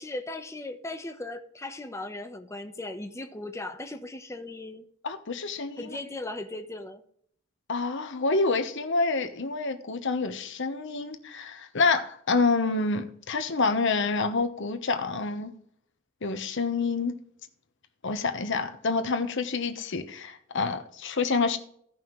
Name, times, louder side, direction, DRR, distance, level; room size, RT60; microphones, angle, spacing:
voice 1, 0.0-4.9 5.8-7.0, left 2 dB, 15° left, 0.9 m, -37 dB
voice 2, 5.0-6.0 7.7-15.5 16.2-17.2 18.0-21.6, left 3 dB, 65° left, 1.0 m, -27 dB
16.0 x 5.6 x 3.2 m
head